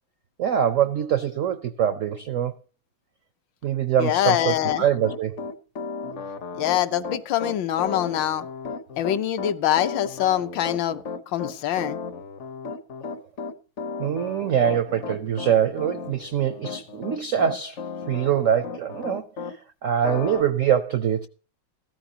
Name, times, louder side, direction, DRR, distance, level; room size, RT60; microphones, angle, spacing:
voice 1, 0.4-2.5 3.6-5.4 14.0-17.8 18.1-19.3 19.8-21.3, right 9 dB, 75° right, 0.7 m, -23 dB
voice 2, 4.0-4.8 6.5-8.5 9.0-11.0 11.3-12.0, left 11 dB, 75° left, 1.5 m, -24 dB
Piano, 4.4-19.6 20.0-20.4, left 4 dB, 50° left, 0.9 m, -34 dB
15.0 x 13.5 x 2.8 m
omnidirectional pair, 2.1 m